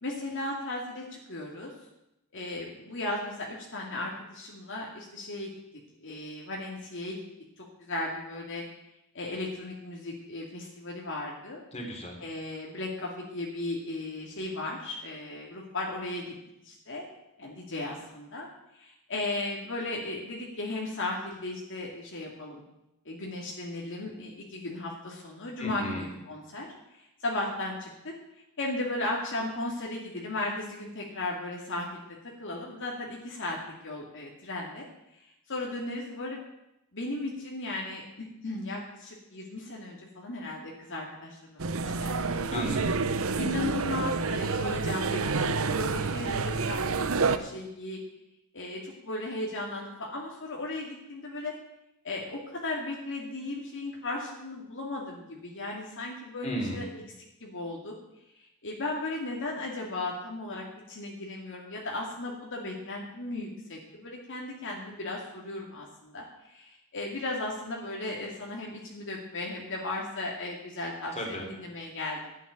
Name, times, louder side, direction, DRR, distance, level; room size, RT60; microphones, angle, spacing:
voice 1, 0.0-1.7 2.3-5.5 6.0-7.2 7.6-8.6 9.1-11.6 12.2-16.3 16.6-17.0 17.4-18.5 18.7-22.6 23.1-27.9 28.6-32.0 32.4-33.6 33.8-34.9 35.5-36.4 36.9-42.4 43.4-48.0 48.5-51.5 52.0-56.8 57.4-57.9 58.6-72.3, left 2 dB, 60° left, -2 dB, 2.5 m, -36 dB
voice 2, 11.7-12.2 25.6-26.0 42.5-43.0 56.4-56.9 71.2-71.5, equal, 30° left, 0 dB, 3.5 m, -34 dB
sound 1, 41.6-47.4, right 4 dB, 70° right, 0.9 m, -28 dB
12.0 x 8.3 x 10.0 m, 0.87 s
head